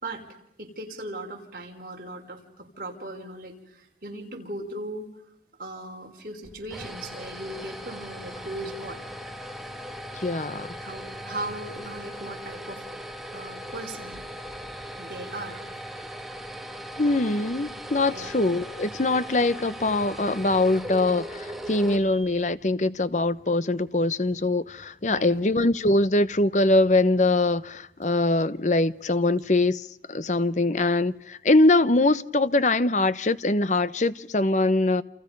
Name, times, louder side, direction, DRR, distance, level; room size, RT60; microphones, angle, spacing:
voice 1, 0.6-5.1 5.6-9.0 10.4-10.5 10.8-12.8 13.3-14.2 14.9-15.6 18.1-18.3 25.1-25.4, right 1 dB, 50° right, 5.2 m, -38 dB
sound 1, 6.4-22.6, equal, ahead, 2.1 m, -39 dB
voice 2, 10.1-10.7 17.0-35.0, left 2 dB, 40° left, 0.9 m, -23 dB
29.0 x 28.5 x 5.4 m
head